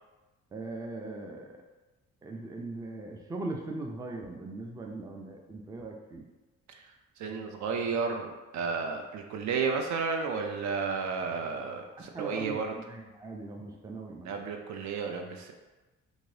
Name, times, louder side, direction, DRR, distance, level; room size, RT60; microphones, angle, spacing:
voice 1, 0.5-1.6 2.2-6.2 12.0-12.6 12.9-14.3, right 2 dB, 10° right, 2 dB, 0.3 m, -40 dB
voice 2, 7.2-12.7 14.2-15.5, right 5 dB, 70° right, 4 dB, 0.5 m, -32 dB
2.6 x 2.6 x 3.2 m, 1.2 s
cardioid pair, 90°, 30 cm